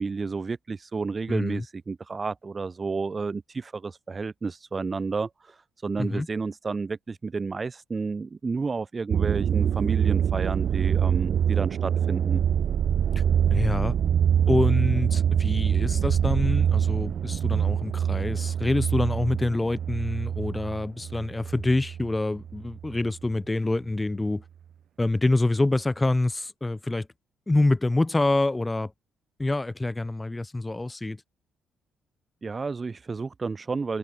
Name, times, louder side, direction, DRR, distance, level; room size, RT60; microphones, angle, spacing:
voice 1, 0.0-12.4 32.4-34.0, right 4 dB, 30° right, 2.2 m, -31 dB
voice 2, 1.3-1.6 6.0-6.3 13.1-13.2 13.5-14.0 14.5-24.4 25.0-27.1 27.5-28.9 29.4-31.2, left 2 dB, 15° left, 7.7 m, -26 dB
sound 1, 9.1-22.1 22.4-23.0, right 9 dB, 60° right, 3.0 m, -25 dB
open air
cardioid pair, 90°, 0 cm